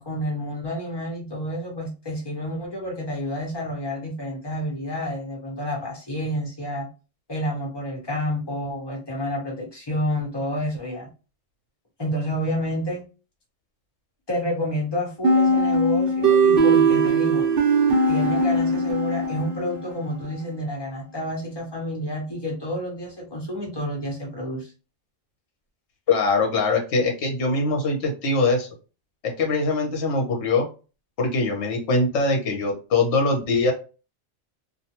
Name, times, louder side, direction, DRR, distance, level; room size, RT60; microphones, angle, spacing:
voice 1, 0.0-6.9 7.3-11.1 12.0-13.1 14.3-17.5 18.1-24.7, equal, 20° left, -2 dB, 0.9 m, -29 dB
sound 1, 15.2-19.9, right 3 dB, 55° right, 0.8 m, -20 dB
voice 2, 26.1-28.7 29.2-30.7 31.2-33.7, left 3 dB, 65° left, 2 dB, 1.0 m, -22 dB
2.4 x 2.2 x 2.8 m, 0.33 s
omnidirectional pair, 1.3 m